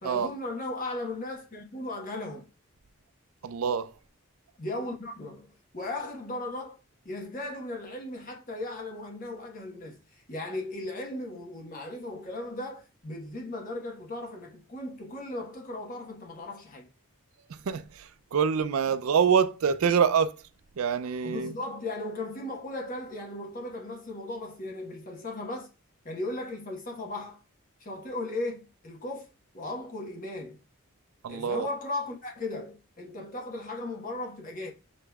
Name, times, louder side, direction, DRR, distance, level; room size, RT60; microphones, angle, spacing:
voice 1, 0.0-2.5 4.6-6.8 7.0-16.9 21.2-25.7 26.0-27.4 27.8-29.3 29.5-30.6 31.3-34.7, left 2 dB, 40° left, 1.1 m, -37 dB
voice 2, 3.4-3.9 17.5-20.4 20.8-21.5 31.2-31.7, right 7 dB, 80° right, 0.4 m, -26 dB
6.3 x 3.1 x 2.3 m
head